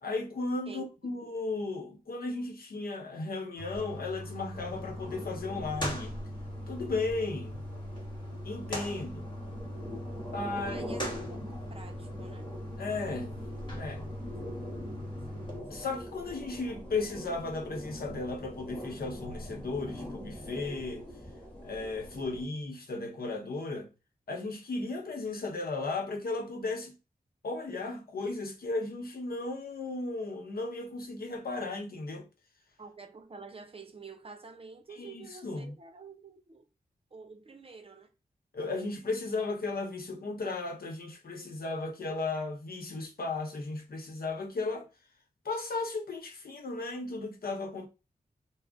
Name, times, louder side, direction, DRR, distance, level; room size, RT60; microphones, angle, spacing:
voice 1, 0.0-6.2 6.7-7.6 8.4-9.3 10.3-10.7 12.8-13.4 13.7-14.1 15.7-21.1 21.6-23.9 24.3-26.9 27.4-32.3 34.9-35.8 38.5-44.9 45.4-47.9, left 3 dB, 70° left, 0.8 m, -35 dB
voice 2, 0.7-1.1 10.5-12.5 32.8-36.7 37.1-38.1, right 4 dB, 35° right, 0.6 m, -48 dB
sound 1, 3.6-15.6, equal, 30° left, 1.1 m, -40 dB
sound 2, 4.5-22.5, left 1 dB, 10° left, 1.3 m, -44 dB
2.3 x 2.0 x 3.5 m
cardioid pair, 65°, 16 cm